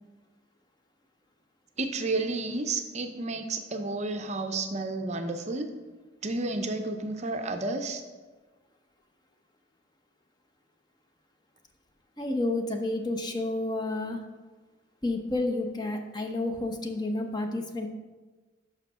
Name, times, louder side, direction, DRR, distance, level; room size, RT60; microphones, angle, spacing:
voice 1, 1.8-5.7 6.2-8.0, right 3 dB, 35° right, 6 dB, 0.5 m, -31 dB
voice 2, 12.2-14.2 15.0-17.9, left 2 dB, 20° left, 4 dB, 0.7 m, -30 dB
5.7 x 5.7 x 6.0 m, 1.3 s
head